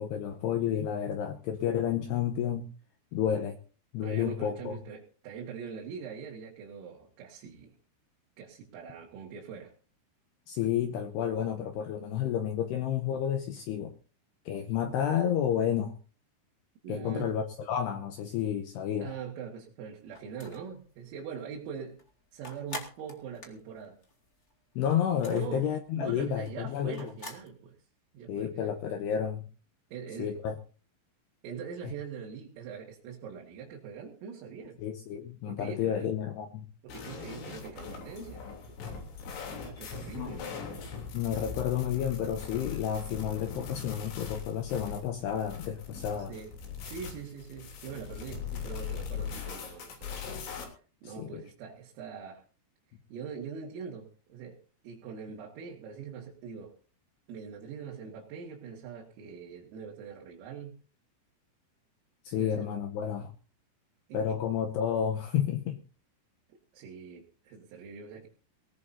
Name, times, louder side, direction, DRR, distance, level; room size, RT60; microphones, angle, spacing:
voice 1, 0.0-2.7 3.1-3.6 3.9-4.7 10.5-13.9 14.5-15.9 16.9-19.1 24.8-27.1 28.3-29.5 30.2-30.5 31.8-31.9 34.8-36.7 40.2-40.4 41.1-46.3 51.0-51.4 62.2-63.3 64.1-65.8, left 9 dB, 90° left, 6 dB, 2.4 m, -31 dB
voice 2, 4.0-7.7 8.4-9.7 14.8-14.9 16.8-17.4 19.0-22.0 22.3-24.0 25.3-25.7 25.9-27.8 28.1-28.7 29.9-30.4 31.4-34.8 35.5-36.1 36.8-38.8 39.6-40.5 46.3-46.5 46.9-50.2 51.0-52.4 53.1-54.6 54.8-56.7 57.3-60.8 62.4-62.7 64.1-64.4 66.7-68.3, right 6 dB, 80° right, -2 dB, 4.7 m, -42 dB
sound 1, 20.1-20.8 21.2-21.3 21.5-24.5 24.8-27.5, left 1 dB, 50° left, 0.8 m, -44 dB
sound 2, 36.9-50.7, left 6 dB, 65° left, 5.5 m, -40 dB
19.5 x 19.0 x 2.7 m, 0.39 s
omnidirectional pair, 6.0 m